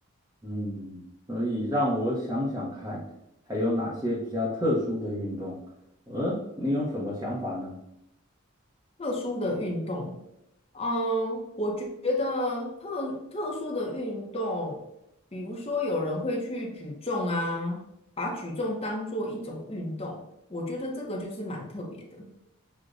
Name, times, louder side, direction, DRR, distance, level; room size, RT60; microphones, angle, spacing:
voice 1, 0.4-1.0 1.3-3.0 3.5-5.6 6.1-7.7, left 1 dB, 15° right, -7 dB, 0.7 m, -29 dB
voice 2, 9.0-10.1 10.7-14.8 15.3-17.8 18.2-20.2 20.5-22.3, left 1 dB, 30° left, 0 dB, 0.7 m, -31 dB
6.3 x 2.2 x 2.5 m, 0.83 s
head